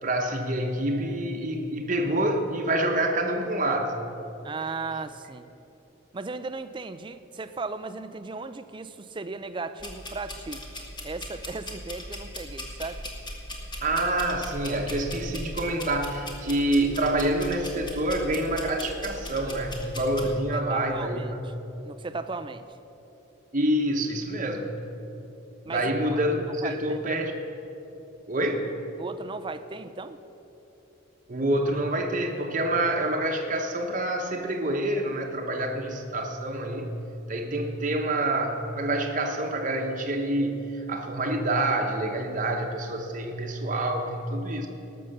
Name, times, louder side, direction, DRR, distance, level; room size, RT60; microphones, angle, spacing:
voice 1, 0.0-4.0 13.8-21.4 23.5-24.7 25.7-27.4 28.3-28.7 31.3-36.9 37.3-44.7, right 1 dB, 40° right, 1 dB, 1.0 m, -27 dB
voice 2, 4.4-5.5 6.1-10.7 11.0-13.0 20.2-21.5 21.8-22.8 25.6-25.9 26.6-27.0 29.0-30.2, right 3 dB, 25° right, 10 dB, 0.5 m, -36 dB
sound 1, 9.8-20.3, left 1 dB, 25° left, 1.5 m, -39 dB
18.5 x 6.7 x 6.6 m, 3.0 s
head